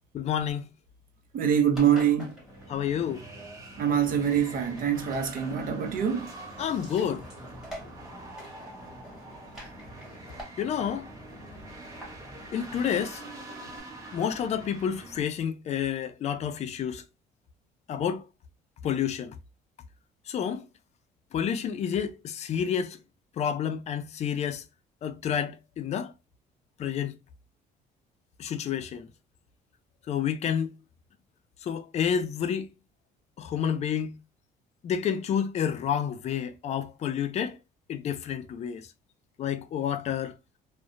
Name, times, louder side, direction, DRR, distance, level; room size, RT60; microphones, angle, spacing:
voice 1, 0.1-0.7 2.7-3.2 6.6-7.2 10.6-11.1 12.5-13.2 14.1-17.0 17.9-18.2 18.8-19.3 20.3-20.7 21.3-23.0 23.4-24.6 25.0-26.1 26.8-27.2 28.4-29.1 30.1-30.8 31.6-32.7 33.4-34.2 34.8-37.6 37.9-38.9 39.4-40.4, left 8 dB, 40° left, 0.4 m, -29 dB
voice 2, 1.3-2.4 3.8-6.3, right 8 dB, 55° right, 0.6 m, -25 dB
Engine, 1.7-13.8, equal, ahead, 1.4 m, -48 dB
sound 1, 2.3-15.2, right 2 dB, 20° right, 1.1 m, -45 dB
2.7 x 2.1 x 2.4 m
cardioid pair, 110°, 17 cm